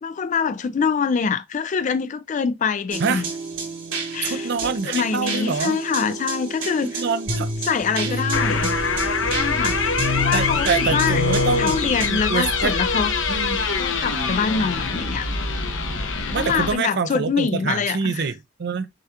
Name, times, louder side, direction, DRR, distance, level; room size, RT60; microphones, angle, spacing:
voice 1, 0.0-3.3 4.1-7.0 7.3-8.7 9.3-9.8 10.2-11.2 11.6-13.1 13.8-15.3 16.3-18.3, left 6 dB, 40° left, 0.3 m, -25 dB
sound 1, 2.9-12.1, right 1 dB, 90° right, 2.8 m, -28 dB
voice 2, 4.2-5.8 6.8-7.5 8.0-8.2 10.3-11.8 12.1-12.7 13.3-13.6 16.3-18.9, right 5 dB, 60° right, 0.5 m, -25 dB
sound 2, 8.3-16.7, left 4 dB, 80° left, 0.8 m, -24 dB
6.6 x 2.3 x 2.8 m
head